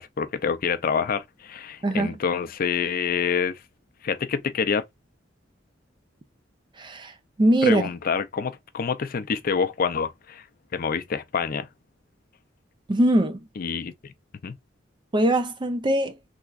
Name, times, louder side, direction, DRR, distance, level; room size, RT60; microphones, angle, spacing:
voice 1, 0.0-3.6 4.0-4.8 7.6-10.4 10.7-11.7 13.6-14.1 14.4-14.6, left 6 dB, 50° left, 0.4 m, -27 dB
voice 2, 1.8-2.1 6.8-7.1 7.4-7.8 12.9-13.4 15.1-16.2, right 1 dB, 25° right, 0.4 m, -21 dB
3.4 x 2.9 x 2.4 m
head